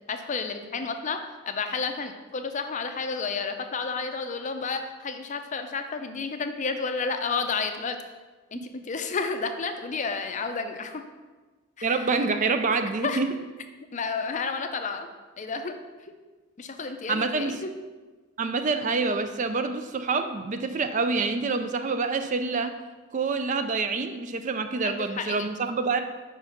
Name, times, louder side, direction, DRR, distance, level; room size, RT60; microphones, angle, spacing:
voice 1, 0.1-1.2 1.5-8.0 8.5-11.0 11.8-12.0 13.0-13.2 13.9-15.1 15.4-15.8 16.6-17.7 24.8-25.3, left 4 dB, 35° left, 7 dB, 0.5 m, -31 dB
voice 2, 11.8-13.3 17.1-17.6 18.4-22.7 23.1-26.0, right 4 dB, 35° right, 8 dB, 0.4 m, -27 dB
5.2 x 4.7 x 5.8 m, 1.3 s
head